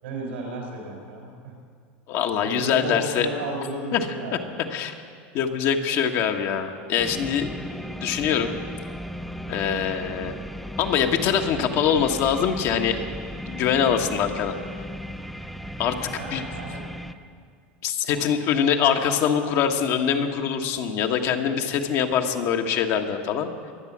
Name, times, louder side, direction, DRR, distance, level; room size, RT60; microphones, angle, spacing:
voice 1, 0.0-1.5 2.4-4.5 16.1-16.9 18.1-18.2, right 1 dB, 90° right, 0 dB, 5.2 m, -34 dB
voice 2, 2.1-3.3 3.9-4.0 4.7-4.9 5.3-7.5 8.0-8.5 9.5-10.4 10.8-13.0 13.5-14.6 15.8-16.0 16.3-16.4 17.8-23.5, left 8 dB, 55° left, 4 dB, 1.4 m, -23 dB
sound 1, 7.0-17.1, equal, ahead, 0.7 m, -36 dB
22.5 x 8.2 x 7.3 m, 2.1 s
hypercardioid pair, 100°, 6 cm